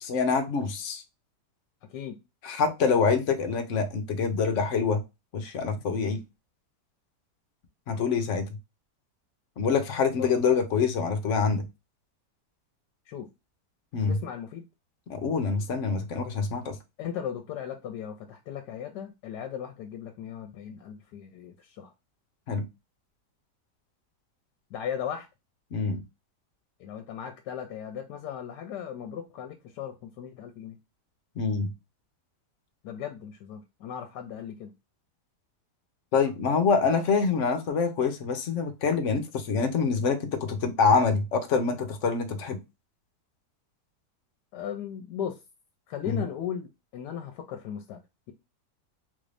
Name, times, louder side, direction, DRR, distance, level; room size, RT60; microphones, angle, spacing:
voice 1, 0.0-1.0 2.4-5.0 5.3-6.2 7.9-8.5 9.6-11.6 13.9-14.2 15.1-16.8 22.5-22.7 25.7-26.0 31.4-31.7 36.1-42.6 46.0-46.2, left 5 dB, 60° left, 0.9 m, -26 dB
voice 2, 14.1-14.6 17.0-21.9 24.7-25.3 26.8-30.8 32.8-34.7 44.5-45.4 45.9-48.0, left 9 dB, 80° left, 1.2 m, -37 dB
3.7 x 2.6 x 3.2 m
omnidirectional pair, 1.8 m